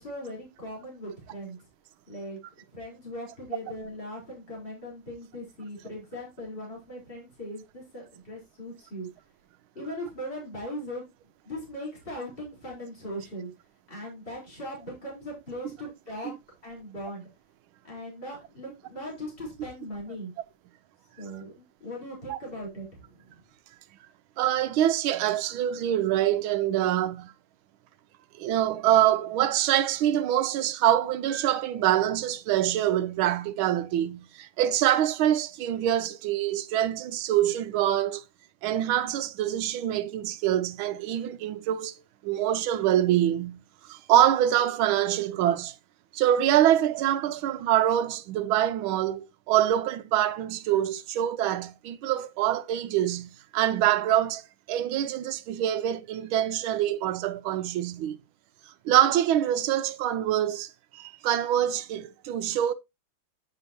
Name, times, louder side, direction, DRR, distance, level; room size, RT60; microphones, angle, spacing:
voice 1, 0.0-1.6 2.1-2.4 2.7-9.1 9.7-11.0 11.4-13.5 13.9-16.3 16.6-17.3 17.8-20.3 21.2-23.4, equal, 25° left, 4.2 m, -39 dB
voice 2, 24.4-27.3 28.4-38.2 38.6-43.6 43.9-45.8 46.1-58.2 58.8-62.7, right 12 dB, 80° right, 1.4 m, -25 dB
8.0 x 6.8 x 2.8 m
omnidirectional pair, 2.3 m